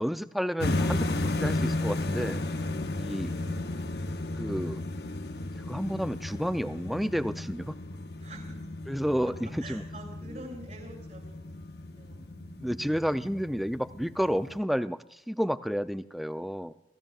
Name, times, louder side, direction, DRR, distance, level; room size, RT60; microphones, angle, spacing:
voice 1, 0.0-2.4 3.0-3.3 4.4-4.8 5.4-7.7 8.9-9.8 10.3-10.4 12.6-16.7, equal, ahead, 11 dB, 0.4 m, -31 dB
sound 1, 0.6-14.6, left 2 dB, 65° left, 0.9 m, -34 dB
voice 2, 3.3-4.0 8.2-8.7 9.2-13.4, right 1 dB, 45° right, 1 dB, 7.6 m, -48 dB
29.5 x 15.5 x 2.4 m, 0.89 s
head